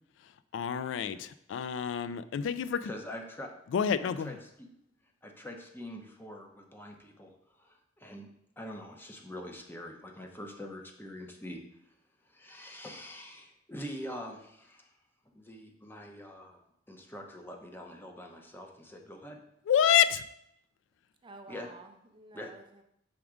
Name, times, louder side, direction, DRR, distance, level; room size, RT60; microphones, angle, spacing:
voice 1, 0.5-2.9 3.7-4.3 19.7-20.2, left 9 dB, 85° left, 14 dB, 0.3 m, -28 dB
voice 2, 2.8-3.5 4.0-4.7 5.2-8.3 8.6-11.6 12.2-14.9 15.3-16.6 16.9-19.4 21.5-21.7 22.3-22.5, equal, 10° left, 2 dB, 0.8 m, -44 dB
voice 3, 21.2-22.8, right 3 dB, 25° right, 5 dB, 0.6 m, -51 dB
6.0 x 3.5 x 5.0 m, 0.76 s
head